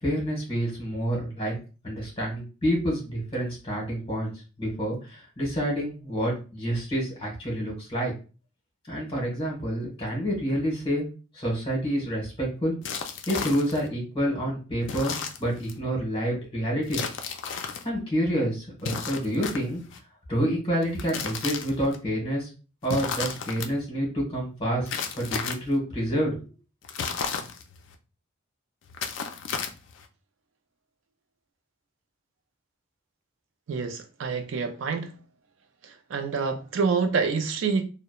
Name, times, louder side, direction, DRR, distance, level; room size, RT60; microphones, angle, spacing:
voice 1, 0.0-1.5 1.8-4.3 4.6-8.1 8.9-11.1 11.3-12.7 13.3-17.1 17.8-19.8 20.3-22.5 22.8-24.9 25.1-26.3, equal, 25° left, 1.1 m, -28 dB
sound 1, 12.8-13.9 14.8-15.8 16.9-17.8 18.8-20.0 20.8-22.0 22.8-23.7 24.9-25.8 26.8-27.9 28.8-30.1, left 6 dB, 60° left, 0.3 m, -33 dB
voice 2, 33.7-35.1 35.8-37.8, right 5 dB, 65° right, 0.4 m, -27 dB
2.9 x 2.0 x 2.3 m
head